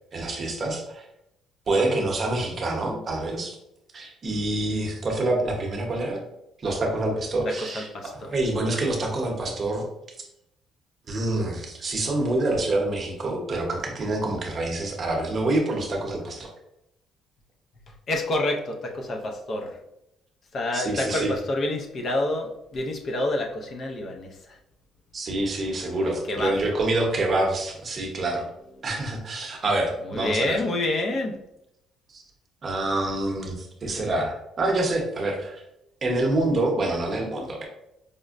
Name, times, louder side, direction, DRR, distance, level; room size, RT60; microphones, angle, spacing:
voice 1, 0.1-1.0 1.7-3.6 3.9-6.2 6.6-9.8 11.1-16.5 20.7-21.4 25.1-28.4 28.8-30.6 32.1-32.2 32.6-35.6 36.0-37.6, right 2 dB, 35° right, 1 dB, 0.7 m, -26 dB
voice 2, 7.6-8.3 18.1-19.7 20.5-24.6 26.0-26.5 30.1-31.4, left 2 dB, 45° left, 2 dB, 0.5 m, -28 dB
5.0 x 2.1 x 2.4 m, 0.84 s
cardioid pair, 125°, 0 cm